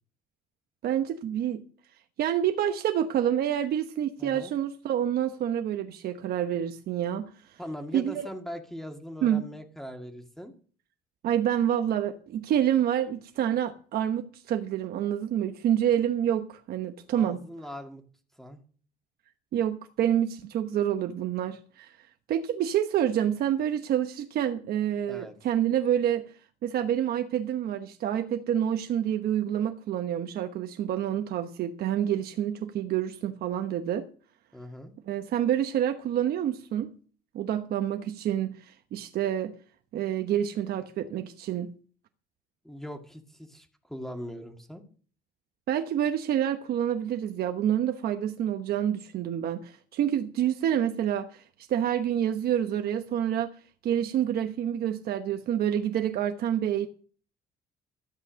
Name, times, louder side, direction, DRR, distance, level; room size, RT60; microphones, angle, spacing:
voice 1, 0.8-1.6 2.2-7.6 7.9-8.2 9.2-9.5 11.2-17.4 19.5-21.9 22.3-26.3 26.6-34.1 35.1-36.9 37.3-39.6 39.9-41.7 45.7-53.5 53.8-56.9, right 10 dB, 65° right, 1.1 m, -28 dB
voice 2, 4.2-4.5 7.6-10.5 17.1-18.0 18.4-18.6 25.1-25.4 34.5-34.9 42.6-44.8, equal, ahead, 1.9 m, -40 dB
13.5 x 8.4 x 6.4 m
cardioid pair, 110°, 17 cm